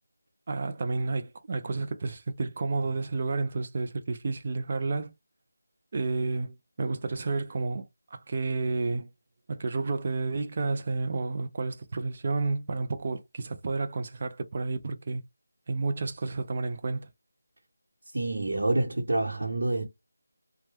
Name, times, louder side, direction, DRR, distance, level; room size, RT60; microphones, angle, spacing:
voice 1, 0.5-5.1 5.9-7.9 8.3-9.1 9.5-15.2 15.7-17.1, right 3 dB, 35° right, 0.5 m, -31 dB
voice 2, 18.1-19.8, right 2 dB, 75° right, 0.9 m, -27 dB
3.0 x 2.2 x 3.3 m
figure-of-eight pair, 170°, 0 cm